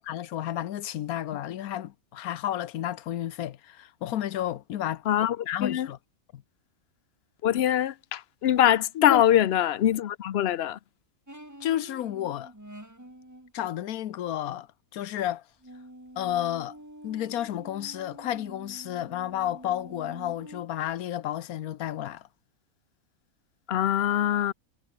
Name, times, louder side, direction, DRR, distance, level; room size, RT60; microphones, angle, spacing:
voice 1, 0.0-5.0 5.5-6.0 6.3-6.4 8.9-9.2 11.6-12.5 13.5-14.7 14.9-15.4 16.2-16.8 17.0-22.2, left 12 dB, 85° left, 1.3 m, -31 dB
voice 2, 5.1-5.4 5.6-5.9 7.4-10.8 23.7-24.5, left 11 dB, 55° left, 0.8 m, -23 dB
sound 1, 11.3-13.5 15.6-20.6, right 1 dB, 10° right, 3.0 m, -47 dB
omnidirectional pair, 1.5 m